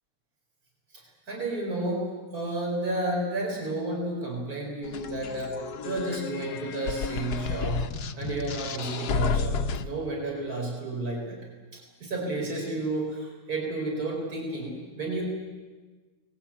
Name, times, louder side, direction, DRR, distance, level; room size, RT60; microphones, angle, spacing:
voice 1, 1.3-2.1 2.3-7.9 8.2-11.4 11.7-15.2, right 2 dB, 60° right, -1 dB, 5.5 m, -31 dB
sound 1, 4.8-9.8, left 5 dB, 70° left, 1.5 m, -31 dB
24.0 x 20.0 x 8.9 m, 1.3 s
omnidirectional pair, 1.8 m